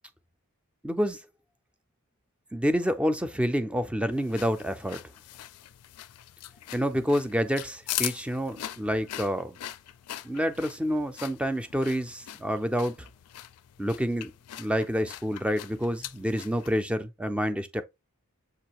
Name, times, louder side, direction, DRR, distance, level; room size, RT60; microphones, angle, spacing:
voice 1, 0.8-1.2 2.5-5.0 6.7-9.6 10.2-13.1 13.8-14.3 14.6-17.8, equal, 5° right, 0.4 m, -28 dB
sound 1, 4.1-16.8, left 14 dB, 85° left, 0.4 m, -41 dB
6.8 x 2.6 x 2.9 m
head